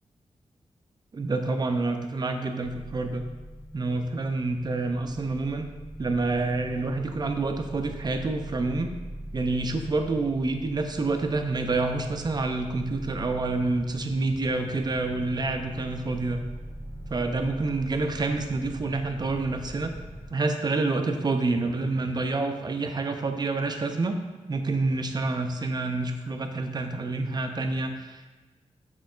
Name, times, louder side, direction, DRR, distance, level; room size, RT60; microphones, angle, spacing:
voice 1, 1.1-3.3 3.7-5.7 6.0-8.9 9.3-16.4 17.1-19.9 20.3-24.1 24.5-28.4, right 3 dB, 35° right, 6 dB, 0.4 m, -28 dB
sound 1, 2.6-20.3, equal, 5° left, 0.8 m, -41 dB
4.3 x 3.7 x 2.4 m, 1.3 s
wide cardioid pair, 80°, 12 cm